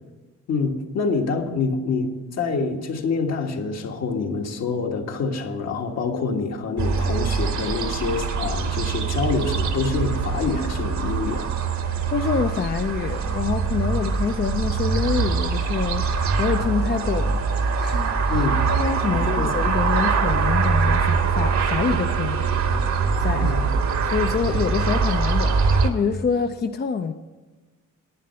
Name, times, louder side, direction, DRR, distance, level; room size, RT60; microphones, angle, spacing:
voice 1, 0.5-11.5 18.3-18.6 19.1-19.5 23.3-23.7, left 4 dB, 60° left, 2 dB, 1.6 m, -26 dB
sound 1, 6.8-25.9, right 5 dB, 70° right, 1.5 m, -23 dB
voice 2, 12.1-22.4 23.2-23.6 24.1-27.1, left 5 dB, 35° left, 6 dB, 0.6 m, -26 dB
11.5 x 9.4 x 5.6 m, 1.3 s
cardioid pair, 90°, 30 cm